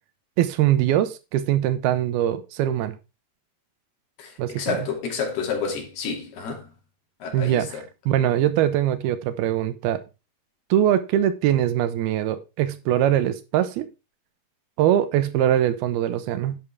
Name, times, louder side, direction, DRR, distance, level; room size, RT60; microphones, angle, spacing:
voice 1, 0.4-3.0 4.4-4.8 7.3-7.7 8.1-10.0 10.7-13.9 14.8-16.6, right 11 dB, 80° right, 2.8 m, -22 dB
voice 2, 4.2-6.7 7.2-7.8, left 5 dB, 80° left, 4.7 m, -30 dB
11.0 x 8.5 x 3.5 m
omnidirectional pair, 4.5 m